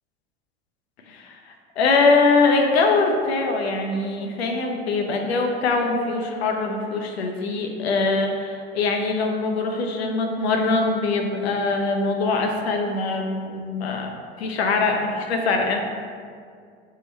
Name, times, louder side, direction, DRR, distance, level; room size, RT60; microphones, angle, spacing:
voice 1, 1.1-14.1 14.4-15.8, left 3 dB, 85° left, 2 dB, 0.5 m, -22 dB
3.7 x 2.1 x 4.0 m, 2.2 s
hypercardioid pair, 75°, 31 cm